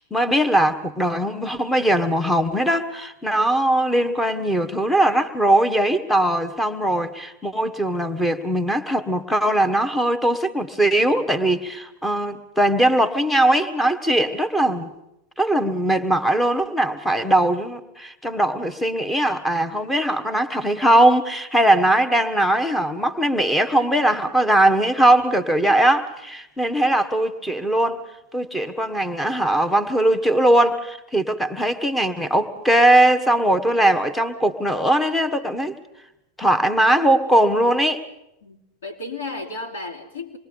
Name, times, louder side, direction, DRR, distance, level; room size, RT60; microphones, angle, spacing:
voice 1, 0.1-14.9 15.4-28.1 28.3-35.8 36.4-38.0, right 1 dB, 5° left, 9 dB, 1.4 m, -20 dB
voice 2, 38.4-40.4, left 3 dB, 65° left, 1 dB, 3.0 m, -33 dB
26.0 x 21.5 x 5.3 m, 0.87 s
figure-of-eight pair, 90°, 0 cm